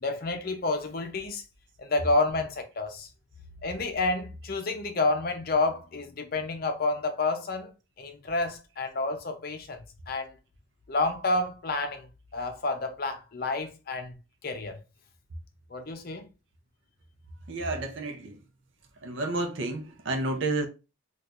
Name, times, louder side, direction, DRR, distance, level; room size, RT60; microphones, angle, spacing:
voice 1, 0.0-1.4 1.8-3.1 3.6-7.7 8.0-10.3 10.9-14.2 14.4-14.8 15.7-16.3, left 3 dB, 45° left, 0.5 m, -29 dB
voice 2, 17.5-18.4 19.0-20.7, right 2 dB, 60° right, 0.6 m, -30 dB
4.3 x 2.4 x 2.4 m
head